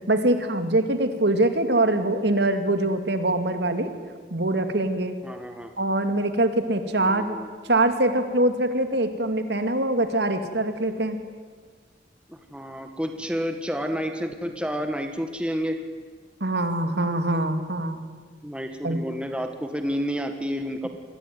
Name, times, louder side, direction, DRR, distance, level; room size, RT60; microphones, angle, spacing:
voice 1, 0.1-3.9 4.3-5.2 5.8-7.4 7.7-11.2 16.4-18.0 18.8-19.0, right 1 dB, 65° right, 8 dB, 2.5 m, -23 dB
voice 2, 5.2-5.7 7.0-7.5 12.3-15.8 18.4-20.9, equal, 5° right, 6 dB, 1.7 m, -30 dB
27.5 x 22.0 x 9.4 m, 1.5 s
head